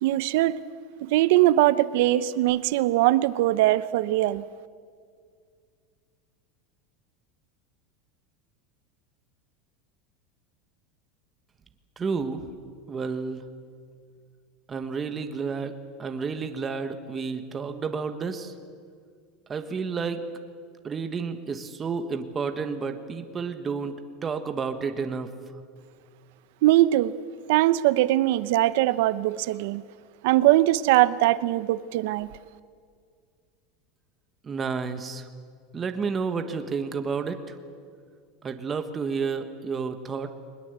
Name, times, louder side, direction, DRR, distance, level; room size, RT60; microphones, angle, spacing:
voice 1, 0.0-0.6 1.0-4.4 26.6-27.1 27.5-29.8 30.2-32.3, right 15 dB, 70° right, 16 dB, 0.8 m, -21 dB
voice 2, 12.0-12.5 12.9-13.4 14.7-15.7 16.0-18.5 19.5-20.2 20.8-25.3 34.4-35.3 35.7-37.6 38.4-40.4, right 5 dB, 20° right, 7 dB, 1.3 m, -31 dB
21.5 x 20.5 x 8.1 m, 2.1 s
supercardioid pair, 155°, 0 cm